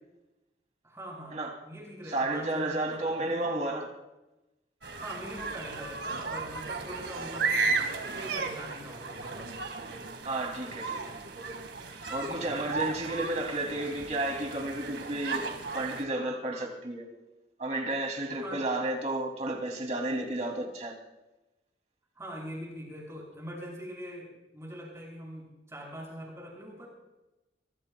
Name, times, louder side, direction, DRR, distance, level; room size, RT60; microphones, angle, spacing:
voice 1, 0.8-3.5 5.0-9.5 12.3-12.6 18.3-18.6 22.2-24.3 24.5-26.9, equal, 15° right, 7.0 m, -43 dB
voice 2, 2.1-3.9 10.2-11.0 12.1-15.4 15.7-17.1 17.6-20.9, right 2 dB, 40° right, 2.9 m, -32 dB
sound 1, 4.8-16.0, right 4 dB, 80° right, 1.9 m, -35 dB
25.0 x 22.5 x 2.3 m
head